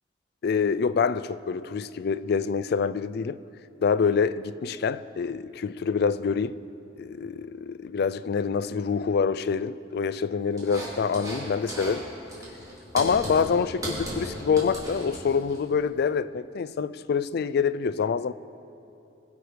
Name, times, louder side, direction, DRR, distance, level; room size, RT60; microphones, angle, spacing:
voice 1, 0.4-3.4 3.8-6.6 7.0-12.0 12.9-18.3, left 6 dB, 60° left, 0.4 m, -26 dB
sound 1, 10.6-11.4 11.7-12.0 12.3-15.6, equal, 20° right, 3.4 m, -35 dB
22.0 x 8.0 x 5.0 m
head